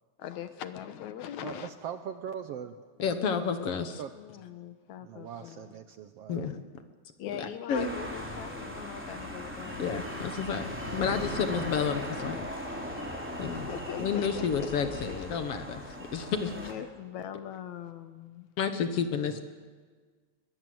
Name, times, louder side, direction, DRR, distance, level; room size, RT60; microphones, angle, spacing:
voice 1, 0.2-1.7 4.1-5.7 7.2-9.9 13.5-14.4 15.3-15.4 16.5-18.5, left 9 dB, 75° left, 10 dB, 2.4 m, -41 dB
voice 2, 1.4-2.8 4.0-4.1 5.0-6.4 19.3-19.4, right 8 dB, 70° right, 9 dB, 1.5 m, -40 dB
voice 3, 3.0-4.0 6.3-6.6 7.3-7.9 9.8-10.7 10.9-12.4 13.4-13.7 14.0-16.5 18.6-19.4, left 6 dB, 60° left, 8 dB, 1.9 m, -30 dB
sound 1, 7.7-16.7, equal, 5° right, 3.3 m, -38 dB
22.5 x 20.5 x 7.9 m, 1.5 s
omnidirectional pair, 3.5 m